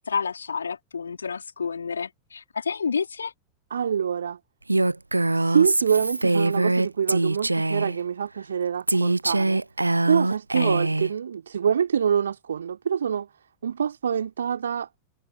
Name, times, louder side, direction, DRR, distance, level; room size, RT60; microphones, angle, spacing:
voice 1, 0.1-3.3 10.6-10.8, left 5 dB, 75° left, 3.1 m, -29 dB
voice 2, 3.7-4.4 5.3-9.6 10.0-13.3 13.6-14.9, right 7 dB, 70° right, 3.2 m, -25 dB
Female speech woman speaking, 4.7-8.0 8.9-11.1, right 2 dB, 85° right, 0.5 m, -23 dB
figure-of-eight pair, 90°, 0 cm